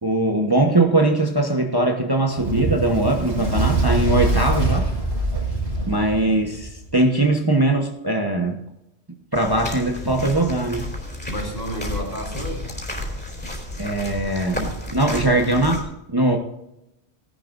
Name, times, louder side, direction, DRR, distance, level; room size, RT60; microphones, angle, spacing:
voice 1, 0.0-4.9 5.9-8.6 9.3-10.9 13.8-16.4, right 2 dB, 20° right, 2 dB, 1.2 m, -21 dB
Fire, 2.3-6.9, right 2 dB, 70° right, 6.2 m, -23 dB
sound 1, 9.3-15.8, left 1 dB, 10° left, 4.1 m, -32 dB
voice 2, 11.2-12.7 15.2-15.5, right 1 dB, 50° left, -2 dB, 4.1 m, -32 dB
18.0 x 11.5 x 2.6 m, 0.85 s
omnidirectional pair, 1.1 m